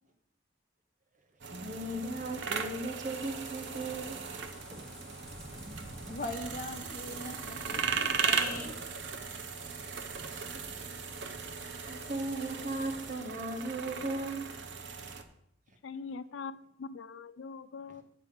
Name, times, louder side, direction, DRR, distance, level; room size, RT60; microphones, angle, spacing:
sound 1, 1.4-15.2, right 6 dB, 70° right, 0.8 m, -37 dB
voice 1, 1.5-4.3 9.3-9.4 10.1-10.8 11.5-14.5 17.9-18.0, right 2 dB, 45° right, 4 dB, 1.4 m, -37 dB
sound 2, 3.1-13.1, left 1 dB, 5° left, 2.1 m, -51 dB
Thunder, 3.1-9.5 10.5-10.7, right 1 dB, 15° right, 1.6 m, -51 dB
voice 2, 6.1-8.8, left 2 dB, 50° left, 6 dB, 1.1 m, -40 dB
voice 3, 15.8-18.0, left 5 dB, 85° left, 15 dB, 0.4 m, -42 dB
8.8 x 4.5 x 7.1 m, 0.77 s
head